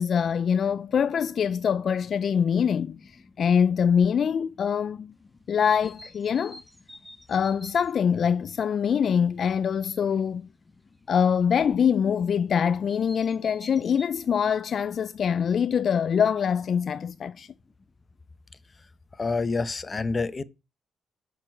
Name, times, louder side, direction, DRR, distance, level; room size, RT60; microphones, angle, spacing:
voice 1, 0.0-5.1 5.5-6.6 7.3-10.5 11.1-17.5, left 7 dB, 55° left, 0.4 m, -24 dB
sound 1, 5.8-8.0 10.0-10.2 12.9-14.1, left 1 dB, ahead, 1.2 m, -48 dB
voice 2, 19.2-20.4, left 4 dB, 30° left, 0.7 m, -27 dB
6.7 x 6.3 x 4.5 m
cardioid pair, 90°, 0 cm